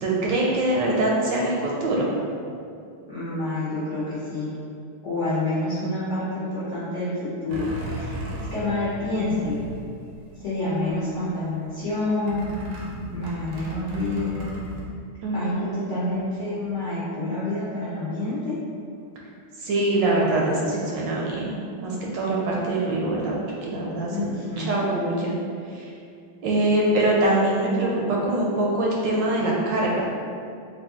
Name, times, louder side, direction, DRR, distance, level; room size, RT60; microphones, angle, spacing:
voice 1, 0.0-2.1 15.2-15.8 19.6-23.3 23.6-24.3 24.6-25.3 25.7-25.9 26.4-30.1, right 1 dB, 70° right, -4 dB, 1.2 m, -23 dB
voice 2, 3.1-4.5 5.0-8.1 8.5-9.6 10.4-12.4 13.1-14.5 15.3-18.6 24.1-24.8, left 2 dB, 55° left, -10 dB, 0.8 m, -28 dB
sound 1, 7.5-10.5 10.8-11.4 12.3-14.8, right 1 dB, 90° right, 1.6 m, -35 dB
3.8 x 2.5 x 3.5 m, 2.4 s
omnidirectional pair, 2.2 m